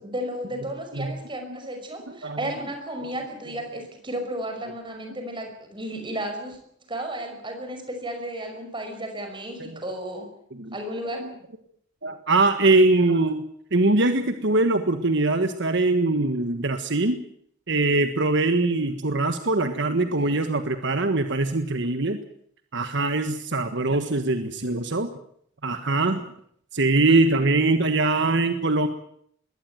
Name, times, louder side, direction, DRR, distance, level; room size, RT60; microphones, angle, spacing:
voice 1, 0.0-6.6 6.9-10.3 10.7-11.3 20.2-20.4, right 1 dB, 25° right, 5 dB, 5.5 m, -33 dB
voice 2, 12.0-13.4 13.7-17.2 17.7-22.2 22.7-25.1 25.6-26.2 26.7-28.9, right 2 dB, 60° right, 8 dB, 1.5 m, -22 dB
21.5 x 17.5 x 9.1 m, 0.67 s
head